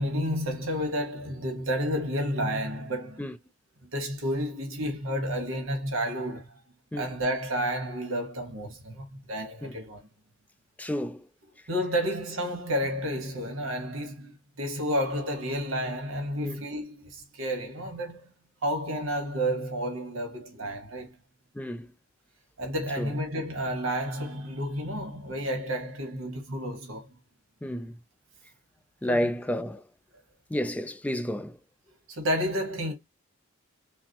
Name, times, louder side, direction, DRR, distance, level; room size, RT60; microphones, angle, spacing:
voice 1, 0.0-3.2 3.9-6.6 7.0-10.1 11.7-14.3 14.6-18.3 18.6-21.2 22.6-27.1 29.1-29.3 32.1-32.9, equal, 70° right, 1.3 m, -31 dB
voice 2, 10.8-11.2 16.4-16.6 21.6-21.9 23.0-23.1 27.6-28.0 29.0-29.8 30.5-31.6, left 1 dB, 5° left, 0.3 m, -30 dB
5.7 x 2.1 x 2.8 m
head